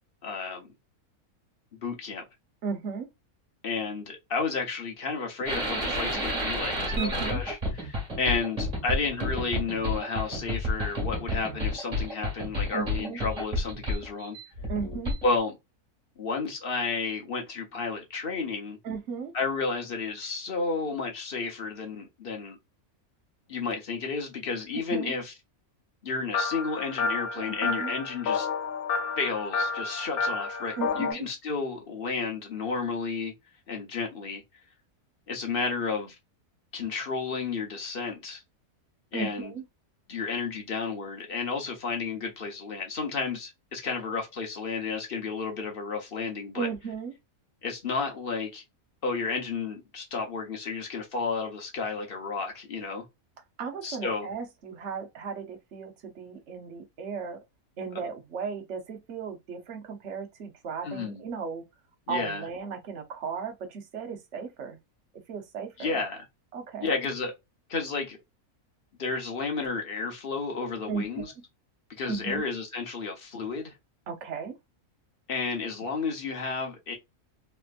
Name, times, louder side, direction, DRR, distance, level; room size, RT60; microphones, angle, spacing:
voice 1, 0.2-0.7 1.7-2.2 3.6-14.4 15.2-15.5 16.2-18.8 19.3-22.6 23.5-25.3 26.0-28.5 29.2-33.3 33.7-34.4 35.3-36.1 36.7-38.4 39.1-39.5 40.1-46.7 47.6-48.6 49.0-53.0 53.8-54.3 60.8-61.2 62.1-62.5 65.8-66.2 66.8-67.3 67.7-68.2 69.0-71.3 72.0-73.7 75.3-76.9, left 4 dB, 45° left, 1.0 m, -32 dB
voice 2, 2.6-3.1 6.9-7.4 12.7-13.2 14.7-15.2 18.8-19.3 24.9-25.1 27.4-27.9 30.8-31.2 39.1-39.6 46.5-47.1 53.6-57.4 57.8-61.6 62.1-64.8 65.1-65.9 66.5-67.0 70.9-71.3 72.1-72.4 74.1-74.6, right 5 dB, 55° right, 1.0 m, -35 dB
sound 1, 5.5-15.4, left 1 dB, 30° right, 1.5 m, -31 dB
sound 2, 26.3-31.1, left 4 dB, 80° left, 1.4 m, -30 dB
3.2 x 2.9 x 2.4 m
omnidirectional pair, 1.6 m